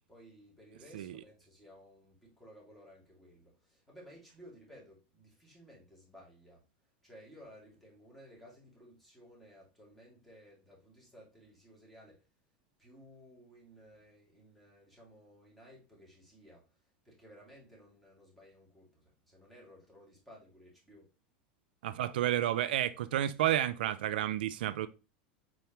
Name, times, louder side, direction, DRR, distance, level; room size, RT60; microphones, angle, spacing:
voice 1, 0.1-6.6 7.0-12.3 12.8-16.6 17.0-21.1, equal, ahead, 2.4 m, -57 dB
voice 2, 21.8-24.9, right 12 dB, 85° right, 0.3 m, -31 dB
4.6 x 3.9 x 2.9 m
supercardioid pair, 120°, 5 cm